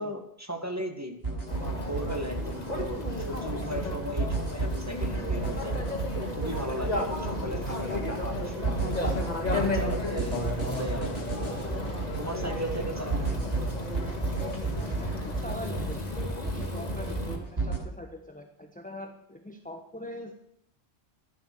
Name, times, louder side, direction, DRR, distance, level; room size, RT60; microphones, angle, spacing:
voice 1, 0.0-5.8 6.2-9.0 9.5-11.3 12.2-13.6, equal, 15° right, 5 dB, 1.8 m, -37 dB
sound 1, 1.2-17.8, right 4 dB, 60° right, 7.8 m, -33 dB
sound 2, 1.5-17.4, left 2 dB, 35° left, 2.4 m, -33 dB
voice 2, 14.7-20.3, left 1 dB, 5° left, 4 dB, 1.3 m, -42 dB
12.5 x 11.5 x 6.8 m, 0.75 s
omnidirectional pair, 1.2 m